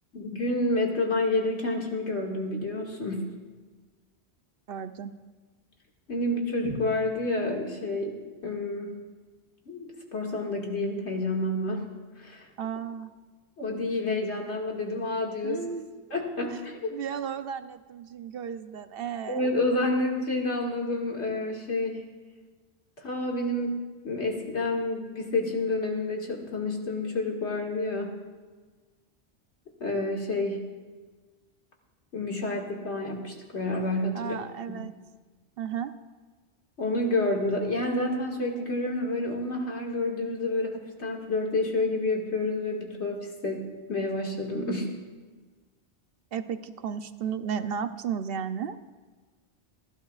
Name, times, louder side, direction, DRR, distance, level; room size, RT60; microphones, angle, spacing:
voice 1, 0.1-3.3 6.1-8.1 8.4-8.9 9.7-11.9 12.2-12.5 13.6-15.6 16.1-16.9 19.3-22.0 23.0-23.7 24.0-28.2 29.8-30.7 32.1-34.4 34.7-34.8 36.8-43.6 43.9-45.0, left 2 dB, 90° left, -1 dB, 2.3 m, -29 dB
voice 2, 4.7-5.1 12.6-13.1 15.4-15.9 16.9-19.5 34.1-34.9 35.6-35.9 46.3-48.8, right 7 dB, 65° right, 10 dB, 0.8 m, -34 dB
27.5 x 12.0 x 2.4 m, 1.3 s
omnidirectional pair, 1.1 m